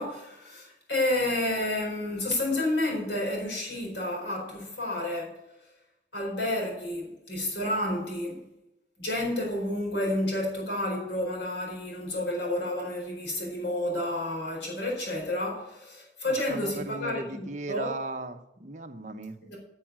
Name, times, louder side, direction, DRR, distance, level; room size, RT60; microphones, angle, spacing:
voice 1, 0.0-5.4 6.1-8.5 9.0-17.9 19.4-19.6, left 1 dB, 75° left, 4.5 m, -30 dB
voice 2, 16.5-19.4, right 2 dB, 40° right, 0.9 m, -36 dB
10.5 x 6.4 x 7.6 m
head